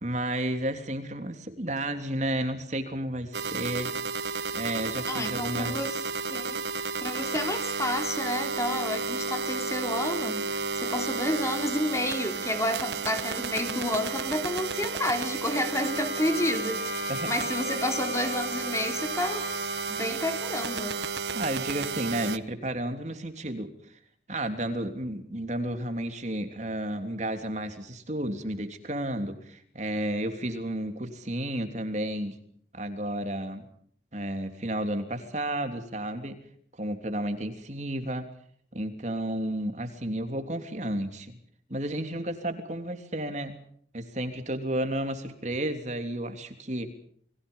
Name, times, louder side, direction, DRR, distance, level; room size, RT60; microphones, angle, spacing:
voice 1, 0.0-3.9 4.5-5.8 17.1-17.3 21.3-24.0 24.3-32.4 32.7-33.7 34.1-36.4 36.8-38.2 38.7-41.4 41.7-43.5 43.9-46.9, right 1 dB, 40° right, 3.2 m, -32 dB
sound 1, 3.3-22.4, right 4 dB, 70° right, 1.3 m, -32 dB
voice 2, 5.1-6.0 6.3-6.6 7.0-19.5 19.9-21.0, left 1 dB, 15° left, 3.6 m, -30 dB
Wind instrument woodwind instrument, 15.8-20.0, left 4 dB, 40° left, 2.5 m, -38 dB
29.5 x 23.0 x 5.6 m
head